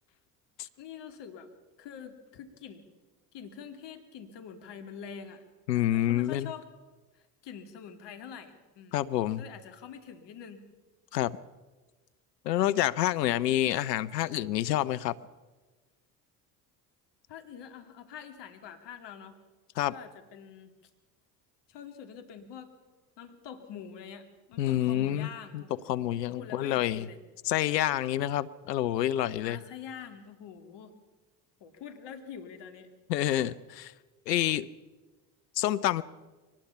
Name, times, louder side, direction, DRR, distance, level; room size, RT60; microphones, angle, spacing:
voice 1, 0.8-1.5 1.8-2.8 3.3-5.4 5.7-6.6 7.1-9.1 9.4-10.6 17.3-19.4 19.8-20.7 21.7-22.7 23.2-27.2 29.4-30.9 31.6-32.9, left 7 dB, 60° left, 7 dB, 2.6 m, -45 dB
voice 2, 5.7-6.5 8.9-9.4 11.1-11.4 12.5-15.2 19.8-19.9 24.6-25.6 25.9-27.1 27.5-29.6 33.1-33.9 34.3-34.7 35.6-36.0, left 13 dB, 85° left, 17 dB, 0.8 m, -28 dB
23.5 x 19.5 x 5.7 m, 1.2 s
hypercardioid pair, 65°, 48 cm